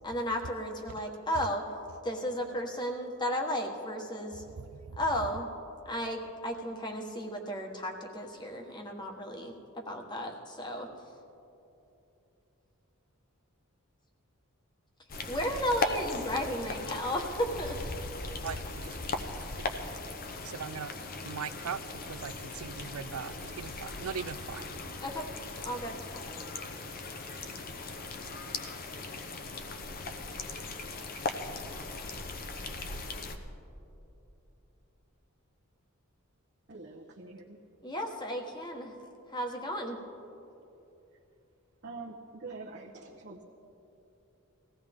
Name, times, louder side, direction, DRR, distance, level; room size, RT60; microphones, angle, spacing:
voice 1, 0.0-1.6 2.0-4.4 5.0-5.5 5.8-10.9 15.3-17.8 25.0-25.2 25.6-26.0 37.8-38.9 39.3-40.0, equal, 20° left, 1.3 m, -34 dB
voice 2, 4.4-5.0 18.4-19.0 19.4-19.9 20.4-20.9 21.2-25.0, right 6 dB, 80° right, 0.5 m, -40 dB
sound 1, 15.1-33.4, left 3 dB, 45° left, 0.9 m, -38 dB
voice 3, 36.7-37.6 41.8-43.4, right 3 dB, 50° right, 1.0 m, -45 dB
20.5 x 15.5 x 3.6 m
head